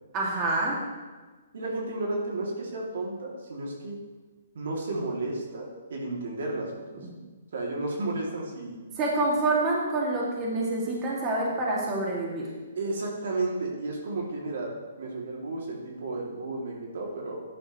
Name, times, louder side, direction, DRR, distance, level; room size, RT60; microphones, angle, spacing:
voice 1, 0.1-0.8 9.0-12.5, right 2 dB, 25° right, -4 dB, 2.4 m, -27 dB
voice 2, 1.5-4.0 4.5-7.1 7.5-8.8 12.7-17.4, right 2 dB, 70° right, -1 dB, 2.7 m, -33 dB
13.0 x 10.5 x 3.2 m, 1.3 s
hypercardioid pair, 150°, 0 cm